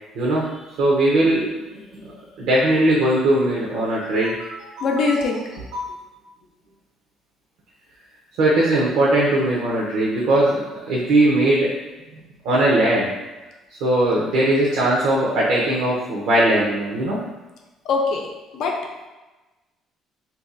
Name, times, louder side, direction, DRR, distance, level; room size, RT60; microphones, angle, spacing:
voice 1, 0.1-0.5 0.8-1.6 2.0-2.1 2.4-5.1 5.7-5.9 8.4-11.7 12.4-13.1 13.8-17.2, right 1 dB, 80° right, -5 dB, 0.7 m, -19 dB
voice 2, 4.8-5.4 17.9-18.3 18.5-18.7, left 4 dB, 70° left, 0 dB, 0.6 m, -21 dB
2.8 x 2.3 x 3.8 m, 1.1 s
cardioid pair, 90°, 0 cm